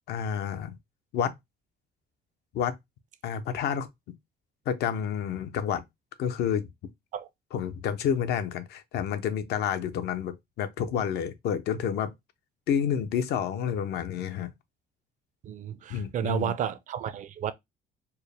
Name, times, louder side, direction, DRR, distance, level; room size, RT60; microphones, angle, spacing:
voice 1, 0.1-0.7 1.1-1.3 2.5-2.8 3.2-3.9 4.7-5.8 6.2-6.7 7.5-12.1 12.7-14.5 15.9-16.5, left 8 dB, 70° left, 0.7 m, -29 dB
voice 2, 15.4-17.5, right 10 dB, 50° right, 0.5 m, -32 dB
4.5 x 2.1 x 3.3 m
cardioid pair, 110°, 17 cm